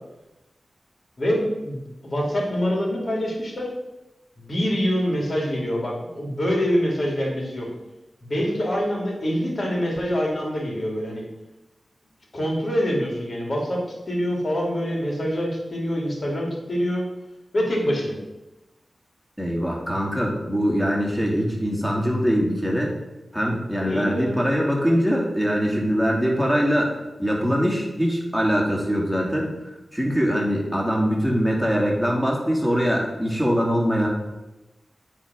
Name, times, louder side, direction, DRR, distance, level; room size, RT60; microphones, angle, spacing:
voice 1, 1.2-3.7 4.4-7.7 8.2-11.3 12.3-13.8 14.1-17.1 17.5-18.2 23.9-24.4, equal, 55° left, -1 dB, 2.5 m, -25 dB
voice 2, 19.4-22.9 23.3-26.9 27.2-29.5 29.9-34.1, equal, 5° left, -2 dB, 2.4 m, -22 dB
8.6 x 3.7 x 6.1 m, 1.0 s
wide cardioid pair, 65°, 0 cm